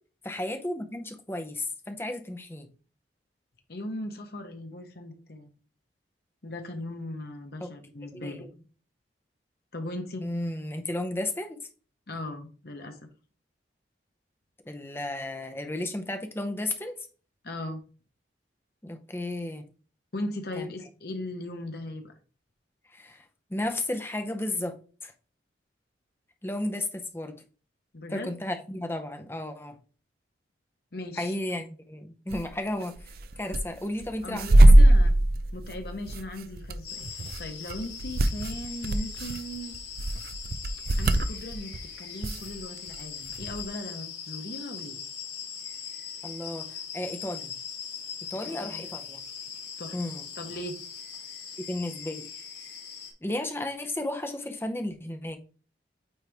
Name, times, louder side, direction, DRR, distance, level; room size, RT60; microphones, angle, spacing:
voice 1, 0.2-2.7 7.6-7.7 8.1-8.5 10.2-11.6 14.7-17.1 18.8-19.6 20.6-20.7 22.9-23.2 23.5-25.1 26.4-27.3 28.1-29.8 31.2-33.1 33.4-34.8 46.2-47.6 48.3-49.2 49.9-50.2 51.7-52.3 53.2-55.4, left 1 dB, 15° left, 0.7 m, -33 dB
voice 2, 3.7-5.5 6.4-8.4 9.7-10.3 12.1-13.1 17.4-17.8 20.1-22.2 27.9-28.3 30.9-31.3 34.2-35.1 35.5-39.7 41.0-45.0 48.4-48.8 49.8-50.0 50.4-50.8, left 1 dB, 60° left, 1.0 m, -38 dB
sound 1, 32.3-32.5 32.8-33.6 34.0-41.8 42.2-42.9 43.2-43.6, right 1 dB, 55° right, 0.5 m, -21 dB
sound 2, 36.9-53.1, left 7 dB, 80° left, 2.3 m, -40 dB
9.0 x 3.1 x 3.4 m
head